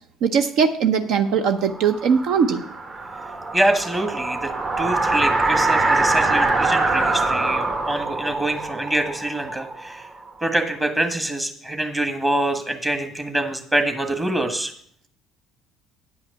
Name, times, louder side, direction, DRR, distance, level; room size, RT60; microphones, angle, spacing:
voice 1, 0.2-2.6, right 6 dB, 65° right, 7 dB, 0.7 m, -20 dB
sound 1, 1.6-10.3, right 3 dB, 45° right, 1.7 m, -23 dB
voice 2, 3.5-4.5 4.8-10.0 10.4-14.7, right 1 dB, 20° right, 5 dB, 1.5 m, -25 dB
9.3 x 5.7 x 6.7 m, 0.62 s
hypercardioid pair, 60°, 0 cm